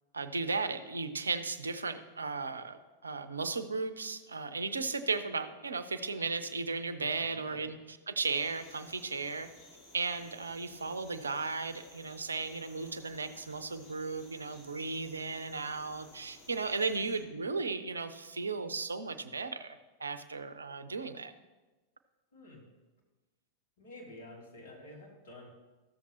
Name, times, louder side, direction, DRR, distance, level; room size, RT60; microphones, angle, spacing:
voice 1, 0.1-9.5 9.9-21.3, right 4 dB, 75° right, 11 dB, 0.5 m, -35 dB
voice 2, 7.2-7.7 22.3-22.6 23.8-25.5, left 1 dB, 60° left, -3 dB, 2.9 m, -50 dB
sound 1, 8.2-17.2, left 1 dB, 40° left, 2.3 m, -56 dB
14.0 x 7.2 x 3.0 m, 1.2 s
figure-of-eight pair, 90°, 0 cm